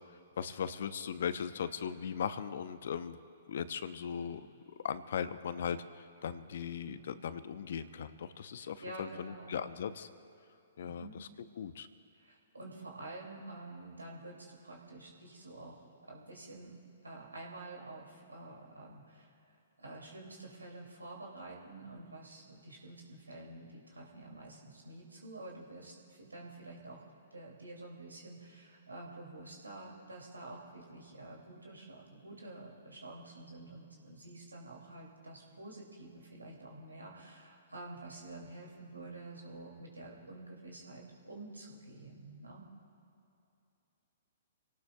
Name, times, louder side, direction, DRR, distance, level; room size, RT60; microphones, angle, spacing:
voice 1, 0.4-3.2 3.5-4.4 4.8-10.1 10.8-11.3 11.6-11.9, left 7 dB, 60° left, 12 dB, 0.8 m, -38 dB
voice 2, 8.6-9.6 10.8-11.1 12.1-16.8 17.0-19.3 19.8-27.0 27.3-42.6, right 2 dB, 85° right, -1 dB, 2.7 m, -49 dB
28.0 x 18.0 x 2.3 m, 2.8 s
figure-of-eight pair, 120°, 0 cm